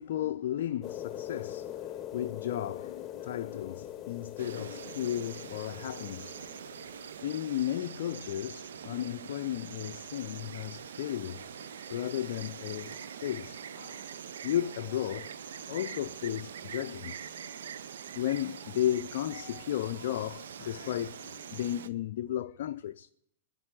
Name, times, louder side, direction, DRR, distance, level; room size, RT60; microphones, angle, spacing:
voice 1, 0.0-6.5 7.2-14.1 14.4-17.7 18.1-23.1, left 11 dB, 60° left, 0.4 m, -34 dB
sound 1, 0.8-7.2, left 11 dB, 25° left, 1.0 m, -42 dB
Insect, 4.4-21.9, right 8 dB, 70° right, 0.6 m, -44 dB
10.5 x 8.7 x 9.2 m
hypercardioid pair, 100°, 0 cm